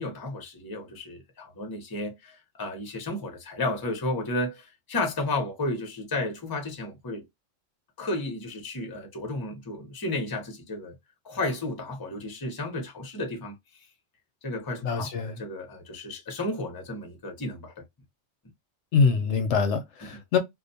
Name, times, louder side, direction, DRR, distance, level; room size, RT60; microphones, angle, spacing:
voice 1, 0.0-7.2 8.0-10.9 11.2-13.5 14.4-17.7, left 2 dB, 25° left, 0.6 m, -33 dB
voice 2, 14.8-15.4 18.9-20.4, left 5 dB, 70° left, 0.8 m, -24 dB
2.4 x 2.2 x 2.5 m
omnidirectional pair, 1.3 m